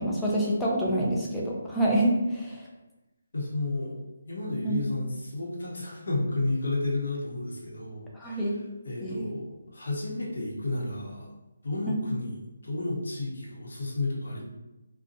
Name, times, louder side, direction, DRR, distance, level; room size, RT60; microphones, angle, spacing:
voice 1, 0.0-2.7 4.6-4.8 8.1-8.6 9.0-9.3 11.9-12.0, right 1 dB, 5° left, -6 dB, 0.4 m, -27 dB
voice 2, 3.3-4.0 4.2-8.6 8.8-11.3 11.6-14.4, left 2 dB, 70° left, -4 dB, 0.8 m, -32 dB
2.7 x 2.1 x 2.5 m, 1.0 s
hypercardioid pair, 165°, 0 cm